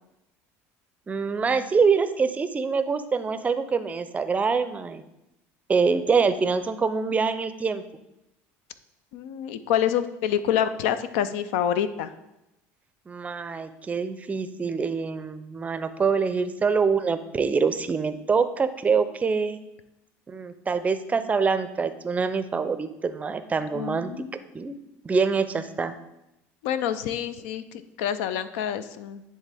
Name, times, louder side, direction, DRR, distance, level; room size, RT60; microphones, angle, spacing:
voice 1, 1.1-5.0 5.7-7.8 13.1-19.6 20.3-24.1 24.5-24.7 25.0-25.9, right 5 dB, 20° right, 11 dB, 0.5 m, -25 dB
voice 2, 9.1-12.1 23.7-24.4 26.6-29.2, left 9 dB, 85° left, 12 dB, 0.5 m, -27 dB
9.7 x 3.6 x 3.4 m, 0.89 s
supercardioid pair, 110°, 7 cm